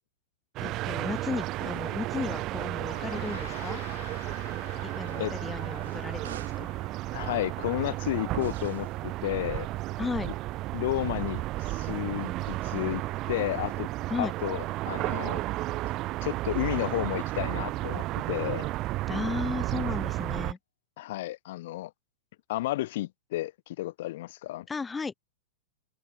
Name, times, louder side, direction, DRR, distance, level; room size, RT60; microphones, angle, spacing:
voice 1, 0.6-3.8 4.8-6.7 10.0-10.3 14.1-14.3 19.1-20.6 24.7-25.1, left 4 dB, 10° left, 1.3 m, -34 dB
sound 1, 0.6-20.5, right 17 dB, 35° right, 1.8 m, -33 dB
Gong, 2.8-12.4, left 10 dB, 85° left, 3.2 m, -51 dB
sound 2, 5.0-6.8 8.3-9.0, right 9 dB, 85° right, 7.0 m, -52 dB
voice 2, 7.1-9.7 10.7-13.9 14.2-15.4 16.2-18.7 21.0-21.9 22.5-24.7, left 16 dB, 60° left, 2.7 m, -32 dB
open air
hypercardioid pair, 140°, 0 cm